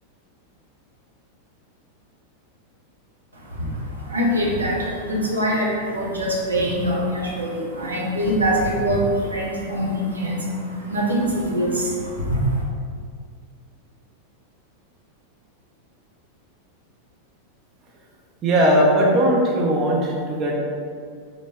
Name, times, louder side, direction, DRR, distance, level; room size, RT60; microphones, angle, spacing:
voice 1, 3.4-12.6, equal, 80° right, -4 dB, 0.6 m, -24 dB
voice 2, 18.4-20.5, equal, 30° right, -3 dB, 0.5 m, -18 dB
3.4 x 2.0 x 3.4 m, 2.1 s
figure-of-eight pair, 90°, 0 cm